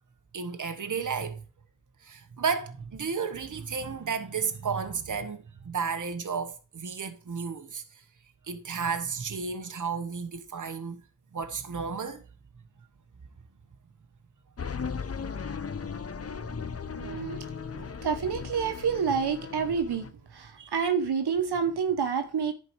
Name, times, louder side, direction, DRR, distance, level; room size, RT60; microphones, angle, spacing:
voice 1, 0.3-1.4 2.0-7.8 8.4-11.0 11.3-12.2 16.2-16.4 17.1-17.3 20.6-20.7, right 5 dB, 50° right, 1.2 m, -33 dB
sound 1, 14.6-20.1, left 6 dB, 40° left, 0.7 m, -37 dB
voice 2, 16.9-17.4 17.7-22.5, right 6 dB, 80° right, 1.1 m, -28 dB
10.5 x 4.5 x 4.6 m
cardioid pair, 55°, 39 cm